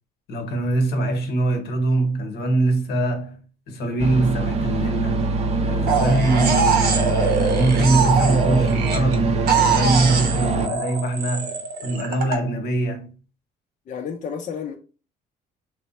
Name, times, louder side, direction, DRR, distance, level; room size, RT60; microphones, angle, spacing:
voice 1, 0.3-5.3 5.6-13.1, right 2 dB, 75° left, 1.0 m, -23 dB
sound 1, 4.0-10.7, right 3 dB, 40° right, 0.6 m, -23 dB
sound 2, 5.9-9.2 9.5-12.4, right 5 dB, 70° right, 0.8 m, -23 dB
voice 2, 13.9-14.7, left 7 dB, 50° left, 0.5 m, -31 dB
3.3 x 2.1 x 4.0 m
cardioid pair, 110°, 17 cm